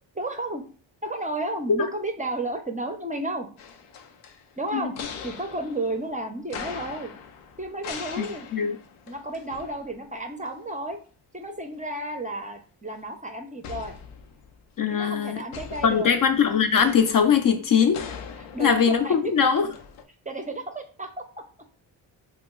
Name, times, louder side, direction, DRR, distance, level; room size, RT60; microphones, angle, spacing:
voice 1, 0.1-0.6 1.0-3.5 4.6-4.9 5.2-7.1 7.6-8.5 9.1-11.0 11.3-13.9 14.9-16.1 18.4-19.1 20.3-21.2, right 1 dB, 15° right, 0.5 m, -32 dB
sound 1, 3.6-10.2 10.4-10.6 13.6-14.7 15.5-20.0, left 6 dB, 90° left, 0.6 m, -41 dB
voice 2, 14.8-15.4 15.8-18.1 18.6-19.7, left 7 dB, 45° left, 0.5 m, -21 dB
2.8 x 2.0 x 3.7 m
cardioid pair, 70°, 48 cm